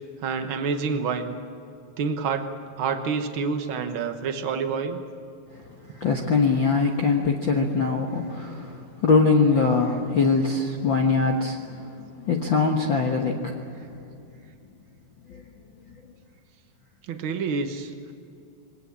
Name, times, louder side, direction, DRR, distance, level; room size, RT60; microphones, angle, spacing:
voice 1, 0.2-1.4 2.0-5.0 17.1-18.1, right 5 dB, 75° right, 7 dB, 1.1 m, -28 dB
voice 2, 6.0-13.6 15.3-15.4, left 4 dB, 55° left, 1 dB, 1.3 m, -22 dB
22.0 x 18.5 x 8.7 m, 2.6 s
omnidirectional pair, 4.1 m